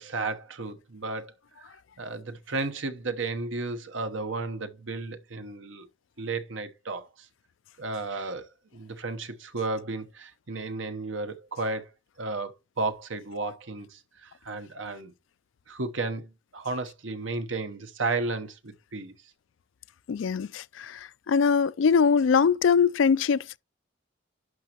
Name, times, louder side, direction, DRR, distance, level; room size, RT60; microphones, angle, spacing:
voice 1, 0.0-1.3 1.6-1.7 2.0-5.9 6.2-7.3 7.8-11.9 12.2-15.1 15.7-19.1, right 3 dB, 85° right, 1.0 m, -33 dB
voice 2, 20.1-23.6, left 6 dB, 85° left, 0.4 m, -22 dB
11.0 x 6.1 x 3.0 m
head